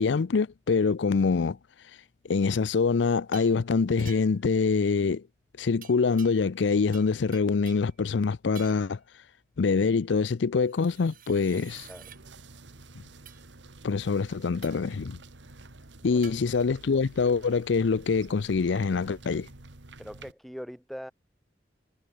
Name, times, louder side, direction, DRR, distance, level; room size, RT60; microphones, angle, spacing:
voice 1, 0.0-1.6 2.3-5.2 5.6-9.0 9.6-11.9 13.8-15.2 16.0-19.5, left 4 dB, 85° left, 0.5 m, -25 dB
sound 1, 3.3-3.6 4.0-4.5 5.8-6.7 6.9-7.9 8.5-8.9 10.6-12.2 13.3-13.4 14.6-14.9 16.2-16.4, right 10 dB, 50° right, 5.2 m, -50 dB
sound 2, 11.7-20.3, right 2 dB, 90° right, 1.9 m, -50 dB
voice 2, 20.0-21.1, equal, ahead, 1.6 m, -41 dB
head